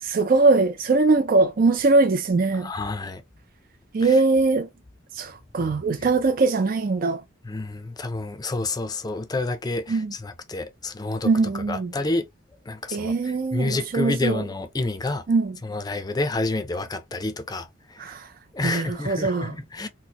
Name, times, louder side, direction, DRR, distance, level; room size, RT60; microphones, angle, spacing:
voice 1, 0.0-2.7 3.9-4.7 5.1-7.2 9.9-10.1 11.2-11.9 12.9-14.4 15.3-15.6 18.0-18.3 18.6-19.6, right 3 dB, 45° right, 0.4 m, -21 dB
voice 2, 2.5-3.2 4.0-4.2 7.4-11.3 11.7-12.2 12.7-15.2 15.6-18.1 18.5-19.9, left 2 dB, 20° left, 0.5 m, -29 dB
4.3 x 2.1 x 2.9 m
head